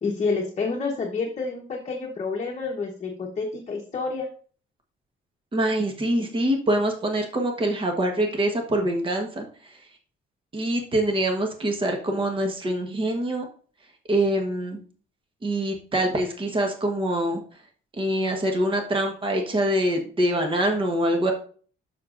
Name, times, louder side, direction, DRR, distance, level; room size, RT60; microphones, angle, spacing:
voice 1, 0.0-4.3, left 4 dB, 30° left, -1 dB, 1.1 m, -29 dB
voice 2, 5.5-9.4 10.5-13.4 14.1-14.8 15.4-17.4 18.0-21.3, right 1 dB, 25° right, 2 dB, 1.2 m, -24 dB
12.0 x 6.2 x 2.5 m, 0.43 s
cardioid pair, 165°, 21 cm